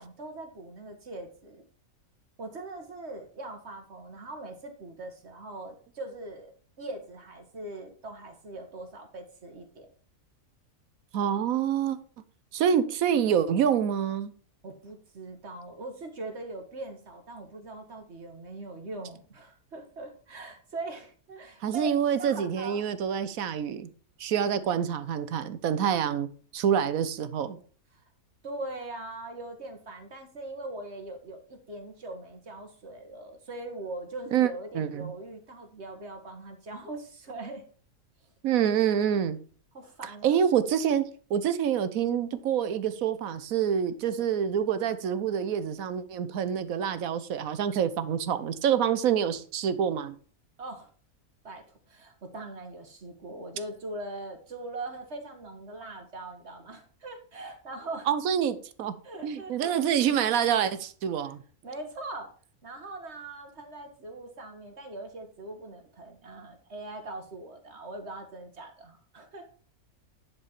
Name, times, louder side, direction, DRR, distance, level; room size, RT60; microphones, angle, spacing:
voice 1, 0.0-1.6 2.4-6.5 6.8-9.9 14.6-21.9 22.2-22.8 27.9-28.0 28.4-37.6 39.7-40.4 50.6-50.9 51.4-51.6 51.9-58.1 59.0-59.8 61.6-62.3 62.6-69.5, right 2 dB, 50° right, 4 dB, 1.8 m, -41 dB
voice 2, 11.1-12.0 12.5-14.3 21.6-23.9 24.2-26.3 26.5-27.6 34.3-35.1 38.4-39.4 40.0-50.1 58.1-58.9 59.2-61.4, right 8 dB, 75° right, 13 dB, 1.2 m, -27 dB
10.5 x 4.9 x 4.5 m, 0.42 s
omnidirectional pair, 1.5 m